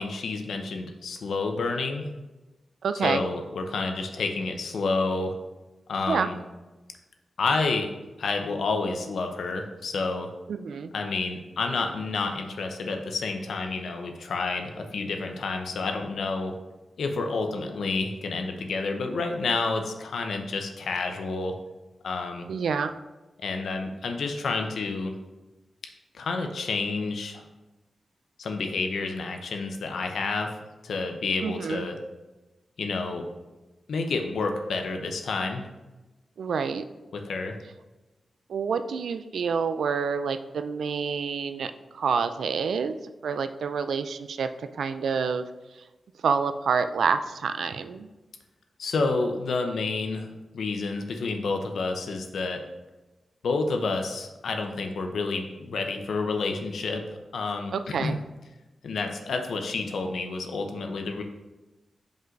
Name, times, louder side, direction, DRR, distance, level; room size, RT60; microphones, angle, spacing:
voice 1, 0.0-2.1 3.0-5.3 5.9-6.4 7.4-7.9 8.2-10.3 10.9-16.6 17.0-21.5 22.0-22.5 23.4-25.1 26.1-27.4 28.4-30.5 30.8-32.0 32.8-33.3 33.9-35.6 37.1-37.6 48.8-52.6 53.4-57.0 57.3-58.2 58.8-61.2, left 3 dB, 85° left, 4 dB, 0.7 m, -29 dB
voice 2, 2.8-3.2 6.1-6.3 10.5-10.9 22.5-22.9 31.4-31.9 36.4-36.8 38.5-43.0 43.2-45.4 45.7-45.8 46.2-48.1 57.7-58.2, right 6 dB, 90° right, 10 dB, 0.3 m, -28 dB
5.3 x 3.9 x 4.6 m, 1.1 s
wide cardioid pair, 90°, 0 cm